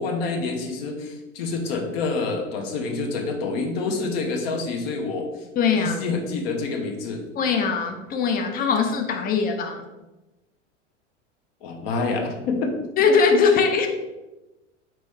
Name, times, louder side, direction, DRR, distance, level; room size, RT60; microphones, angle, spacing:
voice 1, 0.0-5.3 5.8-7.3 11.6-12.7, left 3 dB, 50° left, 2 dB, 0.9 m, -27 dB
voice 2, 5.6-6.0 7.4-9.9 13.0-13.9, left 5 dB, 25° left, 4 dB, 0.5 m, -21 dB
4.3 x 3.0 x 3.4 m, 1.1 s
figure-of-eight pair, 85°, 38 cm